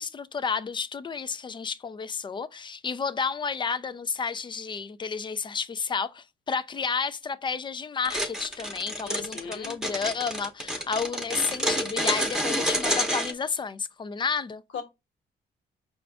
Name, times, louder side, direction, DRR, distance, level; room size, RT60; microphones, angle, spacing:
voice 1, 0.0-14.6, left 5 dB, 25° left, 0.4 m, -31 dB
sound 1, 8.0-13.3, equal, 5° right, 0.8 m, -28 dB
voice 2, 9.0-9.7 14.7-14.8, left 6 dB, 70° left, 1.2 m, -38 dB
4.9 x 2.4 x 3.4 m
cardioid pair, 90°, 20 cm